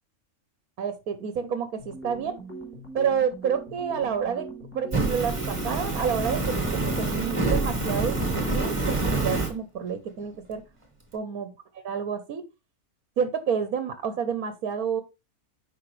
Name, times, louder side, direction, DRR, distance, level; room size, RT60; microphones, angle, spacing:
voice 1, 0.8-2.4 2.9-4.5 4.7-10.6 11.1-11.5 11.8-12.4 13.2-15.0, right 7 dB, 75° right, 1.4 m, -29 dB
sound 1, 1.8-9.5, right 2 dB, 10° left, 3.4 m, -41 dB
Fire, 4.9-9.5, right 2 dB, 20° right, 1.8 m, -26 dB
9.8 x 5.6 x 3.2 m
omnidirectional pair, 1.6 m